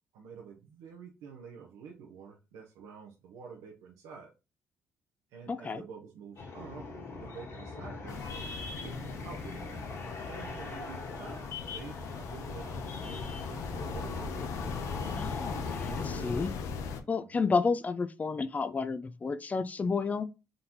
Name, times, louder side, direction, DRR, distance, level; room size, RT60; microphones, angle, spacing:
voice 1, 0.1-4.3 5.3-6.9 7.1-10.0 10.2-14.2 17.3-17.4, right 6 dB, 90° right, 0.8 m, -48 dB
voice 2, 5.5-5.8 15.2-16.5 17.1-20.3, left 4 dB, 30° left, 0.5 m, -31 dB
sound 1, 6.4-16.5, left 3 dB, 60° left, 1.5 m, -41 dB
sound 2, 8.1-17.0, left 5 dB, 80° left, 0.6 m, -39 dB
3.9 x 3.8 x 2.9 m
cardioid pair, 80°, 5 cm